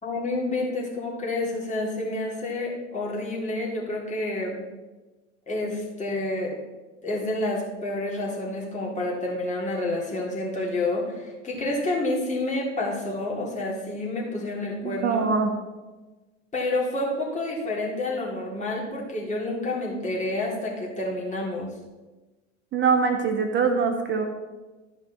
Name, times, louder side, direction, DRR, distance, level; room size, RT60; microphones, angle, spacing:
voice 1, 0.0-4.6 5.5-6.5 7.0-15.3 16.5-21.7, left 2 dB, 20° left, -3 dB, 3.4 m, -29 dB
voice 2, 14.8-15.5 22.7-24.3, right 5 dB, 30° right, 5 dB, 1.4 m, -23 dB
13.5 x 5.2 x 4.4 m, 1.2 s
figure-of-eight pair, 75°, 36 cm